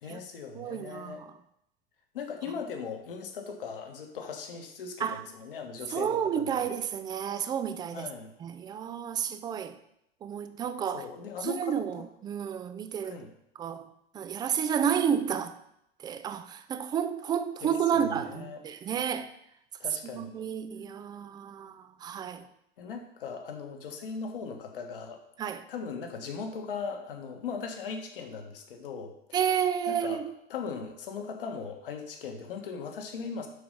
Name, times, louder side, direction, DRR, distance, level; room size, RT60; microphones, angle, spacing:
voice 1, 0.0-1.2 2.1-6.7 7.9-8.4 10.9-12.0 13.0-13.3 17.6-18.6 19.8-20.3 22.8-25.2 25.7-29.1 29.9-30.2 30.5-33.5, left 5 dB, 60° left, 1.4 m, -39 dB
voice 2, 0.6-1.3 5.0-5.2 5.9-8.1 8.4-9.8 10.2-11.1 11.4-13.2 13.6-13.9 14.1-15.5 16.0-19.3 20.1-22.5 25.4-25.6 29.3-30.3, right 8 dB, 15° right, 0.4 m, -31 dB
7.1 x 6.1 x 5.4 m
figure-of-eight pair, 90°, 31 cm